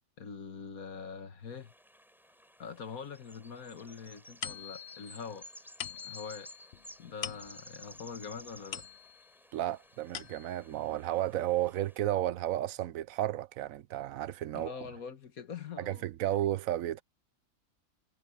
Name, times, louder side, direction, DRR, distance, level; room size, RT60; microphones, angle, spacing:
voice 1, 0.2-1.7 2.6-5.5 5.9-6.5 7.0-8.8 14.5-16.1, left 6 dB, 90° left, 2.0 m, -44 dB
sound 1, 1.5-12.1, equal, ahead, 7.5 m, -55 dB
sound 2, 4.4-9.4 9.8-10.7, left 9 dB, 60° left, 1.1 m, -44 dB
voice 2, 9.5-14.7 15.8-17.0, right 13 dB, 80° right, 1.1 m, -33 dB
omnidirectional pair, 1.4 m